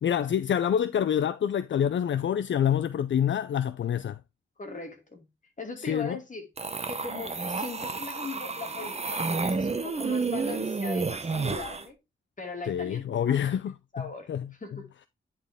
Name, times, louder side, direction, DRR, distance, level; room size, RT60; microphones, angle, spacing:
voice 1, 0.0-4.2 5.8-6.2 12.7-14.5, left 9 dB, 65° left, 0.4 m, -27 dB
voice 2, 4.6-5.2 5.6-6.5 6.9-12.0 12.4-13.4 13.9-14.9, left 3 dB, 40° left, 2.3 m, -40 dB
sound 1, 6.6-11.9, right 4 dB, 30° right, 0.9 m, -30 dB
10.0 x 4.1 x 3.6 m
wide cardioid pair, 105°, 21 cm